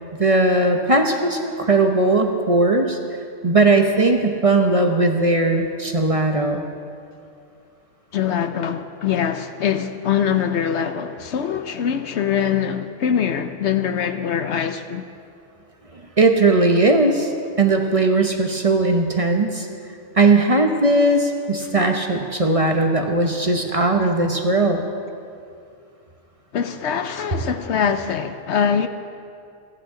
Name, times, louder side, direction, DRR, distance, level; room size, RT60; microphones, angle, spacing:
voice 1, 0.2-3.0 3.4-6.7 16.2-17.3 17.6-19.7 20.1-24.8, right 2 dB, 30° right, 0.9 m, -18 dB
voice 2, 8.1-15.1 26.5-28.9, left 8 dB, 70° left, 0.9 m, -23 dB
29.5 x 10.0 x 3.8 m
omnidirectional pair, 1.3 m